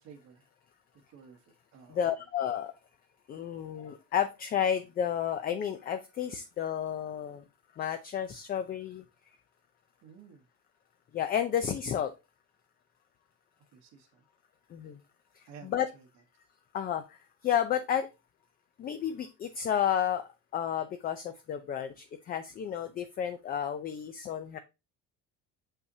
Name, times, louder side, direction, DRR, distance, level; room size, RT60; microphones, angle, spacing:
voice 1, 0.0-0.4 1.1-1.4 1.7-2.0 10.0-10.4 13.7-14.2 15.5-16.0, right 6 dB, 60° right, 2 dB, 1.2 m, -52 dB
voice 2, 1.9-2.7 3.3-7.4 7.7-9.0 11.1-12.1 14.7-15.0 15.3-15.9 16.7-18.1 18.8-20.3 20.5-24.6, left 9 dB, 30° left, 8 dB, 0.5 m, -31 dB
6.4 x 5.6 x 2.7 m, 0.26 s
cardioid pair, 165°, 30 cm